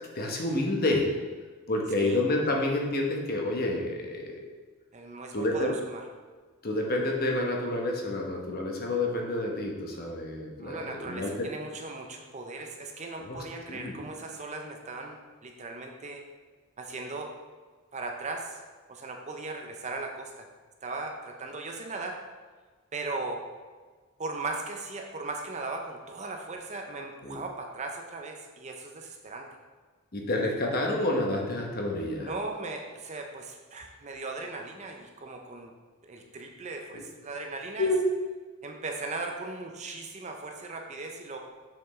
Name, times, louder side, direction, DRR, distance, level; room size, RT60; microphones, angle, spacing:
voice 1, 0.1-1.1 1.7-4.4 5.3-5.7 6.6-11.5 13.2-13.4 13.7-14.0 27.2-27.4 30.1-32.3 36.9-37.0 37.8-38.1, left 2 dB, 45° left, 0 dB, 1.0 m, -29 dB
voice 2, 4.9-6.0 10.6-16.2 16.8-17.4 17.9-18.6 18.9-20.5 20.8-22.2 22.9-23.4 24.2-29.5 32.2-35.7 36.0-37.9 38.6-41.4, right 3 dB, 30° right, 3 dB, 0.6 m, -38 dB
6.9 x 5.8 x 3.2 m, 1.4 s
head